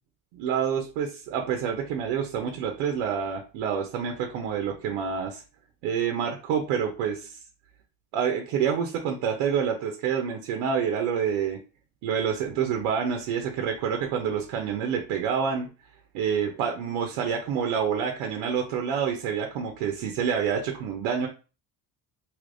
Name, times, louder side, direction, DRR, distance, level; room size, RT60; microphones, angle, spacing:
voice 1, 0.3-5.4 5.8-7.4 8.1-11.6 12.0-15.7 16.1-21.3, right 7 dB, 85° right, 4 dB, 0.7 m, -27 dB
3.4 x 2.8 x 2.5 m, 0.33 s
supercardioid pair, 90°, 48 cm